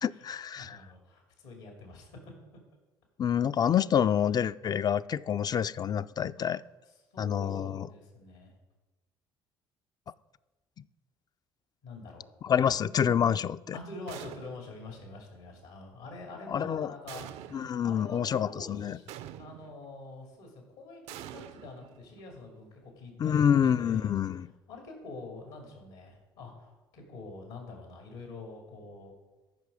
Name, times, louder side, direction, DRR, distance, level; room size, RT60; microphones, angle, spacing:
voice 1, 0.0-0.8 3.2-6.6 7.2-7.9 12.4-13.7 16.5-16.9 17.5-19.0 23.2-24.5, left 8 dB, 35° left, 0.4 m, -27 dB
voice 2, 0.6-2.1 6.4-6.5 7.1-8.5 11.8-12.3 13.7-19.1 19.4-24.2 24.7-29.1, left 2 dB, 80° left, 2.5 m, -46 dB
sound 1, 14.1-14.8 17.1-17.9 19.1-19.9 21.1-22.3, right 11 dB, 70° right, 0.5 m, -46 dB
13.5 x 5.9 x 4.9 m
hypercardioid pair, 60°, 11 cm